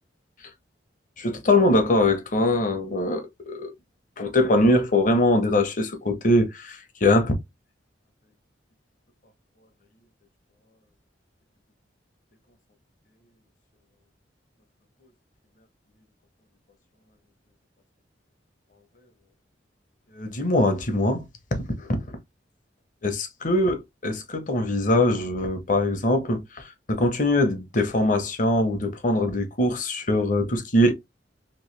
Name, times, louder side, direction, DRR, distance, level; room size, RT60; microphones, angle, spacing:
voice 1, 1.2-3.7 4.2-7.3 20.1-21.2 21.7-22.0 23.0-30.9, left 1 dB, 45° left, 0.8 m, -22 dB
3.1 x 2.6 x 3.1 m
head